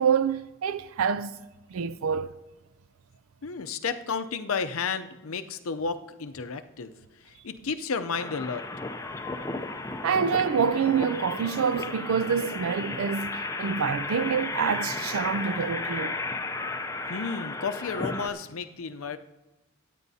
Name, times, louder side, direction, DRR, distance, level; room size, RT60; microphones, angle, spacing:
voice 1, 0.0-1.4 1.7-2.3 10.0-16.2, right 6 dB, 80° right, 0.4 m, -26 dB
voice 2, 3.4-8.6 17.1-19.2, left 5 dB, 80° left, 0.6 m, -32 dB
sound 1, 8.1-18.3, left 3 dB, 15° left, 0.5 m, -34 dB
22.5 x 9.2 x 2.8 m
head